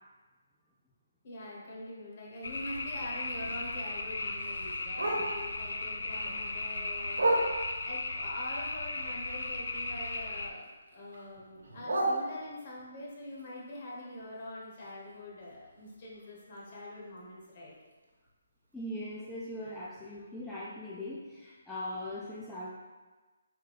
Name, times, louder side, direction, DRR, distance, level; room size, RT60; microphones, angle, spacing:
voice 1, 1.2-10.6 10.9-17.7, left 1 dB, 40° left, -4 dB, 1.0 m, -44 dB
sound 1, 2.4-10.5, left 2 dB, 80° left, 0.4 m, -36 dB
Bark, 2.4-5.6 6.0-7.9 8.4-10.2 10.5-12.8 13.3-17.2 17.5-17.6 17.9-18.3 18.7-18.8 19.2-19.3 19.8-19.9, right 1 dB, 85° right, 1.0 m, -36 dB
voice 2, 18.7-22.7, left 1 dB, 5° left, -7 dB, 0.3 m, -40 dB
3.5 x 3.2 x 3.3 m, 1.3 s
hypercardioid pair, 160°, 0 cm